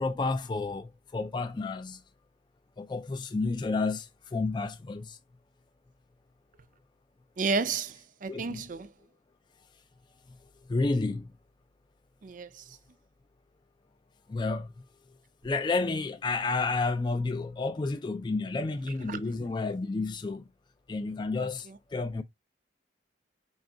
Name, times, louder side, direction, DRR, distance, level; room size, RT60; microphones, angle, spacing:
voice 1, 0.0-2.0 2.8-5.2 8.3-8.6 10.7-11.3 14.3-14.7 15.4-20.5 20.9-22.2, left 3 dB, 25° left, 0.3 m, -31 dB
voice 2, 7.4-8.9 12.2-12.8 19.1-19.2 21.4-21.8, right 4 dB, 45° right, 0.4 m, -32 dB
4.9 x 2.4 x 3.7 m
head